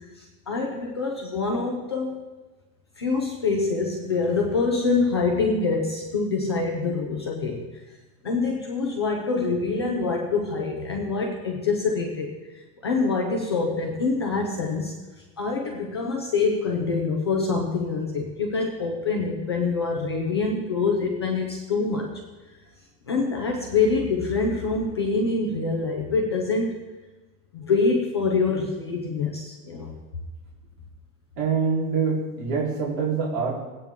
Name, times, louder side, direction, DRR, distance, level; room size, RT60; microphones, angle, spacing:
voice 1, 0.5-2.2 3.0-7.6 8.2-12.3 12.8-14.9 15.4-22.1 23.1-26.7 27.5-30.0, left 4 dB, 20° left, 0 dB, 0.3 m, -25 dB
voice 2, 31.4-33.6, right 5 dB, 45° right, -6 dB, 3.6 m, -25 dB
17.0 x 8.8 x 3.5 m, 1.2 s
supercardioid pair, 170°, 46 cm